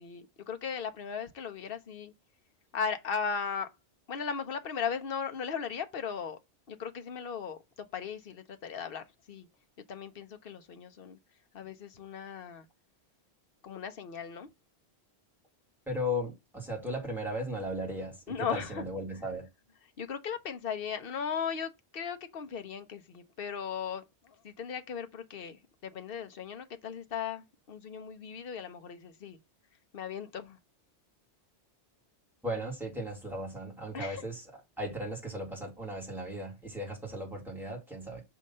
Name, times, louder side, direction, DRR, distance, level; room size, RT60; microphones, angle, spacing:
voice 1, 0.0-2.1 2.7-3.7 4.1-6.4 6.7-9.5 9.9-11.2 11.5-12.6 13.6-14.5 18.3-18.9 20.0-29.4 29.9-30.6 33.9-34.2, left 6 dB, 60° left, 0.9 m, -37 dB
voice 2, 15.9-19.5 32.4-34.5 34.8-38.2, equal, ahead, 1.9 m, -36 dB
6.3 x 2.8 x 5.3 m
omnidirectional pair, 1.2 m